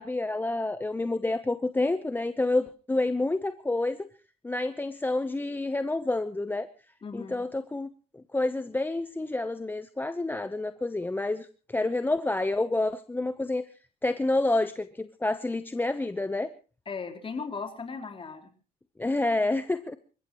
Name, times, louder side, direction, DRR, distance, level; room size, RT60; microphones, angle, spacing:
voice 1, 0.0-4.1 4.4-6.7 7.1-13.7 14.0-16.5 19.0-20.0, left 2 dB, 10° left, 12 dB, 0.8 m, -28 dB
voice 2, 7.0-7.4 16.9-18.5, left 5 dB, 30° left, 4 dB, 3.9 m, -37 dB
28.5 x 15.5 x 3.0 m, 0.37 s
cardioid pair, 110°, 17 cm